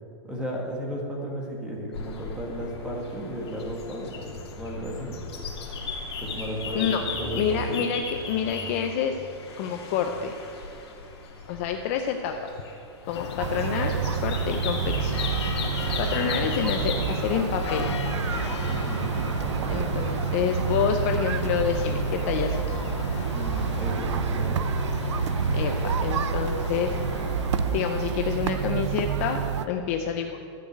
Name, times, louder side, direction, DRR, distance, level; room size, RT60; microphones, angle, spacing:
voice 1, 0.2-5.2 6.2-7.8 16.1-16.6 18.7-19.3 23.3-24.6, equal, 5° right, -1 dB, 1.4 m, -34 dB
sound 1, 1.9-18.9, left 4 dB, 65° left, 2.6 m, -37 dB
voice 2, 6.7-9.2 9.6-10.4 11.5-12.4 13.0-15.2 16.0-17.9 19.7-22.8 25.5-27.4 27.7-30.4, left 7 dB, 30° left, 5 dB, 0.5 m, -28 dB
sound 2, 13.0-28.5, left 9 dB, 80° left, 0.6 m, -35 dB
sound 3, 13.4-29.7, right 7 dB, 85° right, 0.7 m, -28 dB
12.5 x 6.4 x 9.1 m, 2.7 s
supercardioid pair, 175°, 15 cm